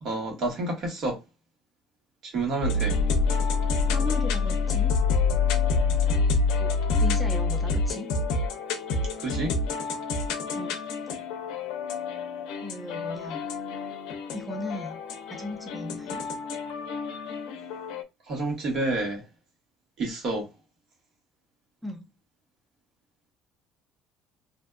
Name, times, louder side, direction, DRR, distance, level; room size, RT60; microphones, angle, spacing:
voice 1, 0.0-1.2 2.2-2.9 9.2-9.5 18.3-19.2 20.0-20.5, right 2 dB, 60° right, 1.3 m, -29 dB
sound 1, 2.6-18.0, left 4 dB, 85° left, 0.4 m, -27 dB
voice 2, 3.9-4.9 6.6-6.7 7.0-8.1 10.4-10.8 12.6-13.4 14.3-15.0 15.3-16.2 21.8-22.1, left 1 dB, ahead, 0.4 m, -36 dB
2.6 x 2.2 x 2.2 m
cardioid pair, 105°, 0 cm